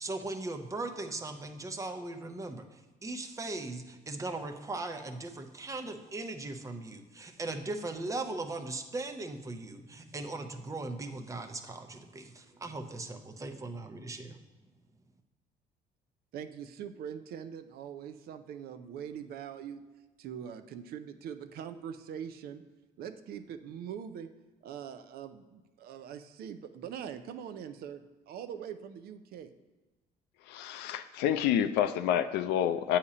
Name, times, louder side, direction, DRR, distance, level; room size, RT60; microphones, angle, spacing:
voice 1, 0.0-14.4, right 2 dB, 20° right, 6 dB, 0.6 m, -39 dB
voice 2, 16.3-19.8 20.2-22.6 23.0-24.3 24.6-29.5, right 8 dB, 65° right, 10 dB, 0.5 m, -42 dB
voice 3, 30.5-33.0, left 10 dB, 80° left, 11 dB, 0.4 m, -28 dB
8.4 x 2.9 x 4.8 m, 1.2 s
cardioid pair, 110°, 17 cm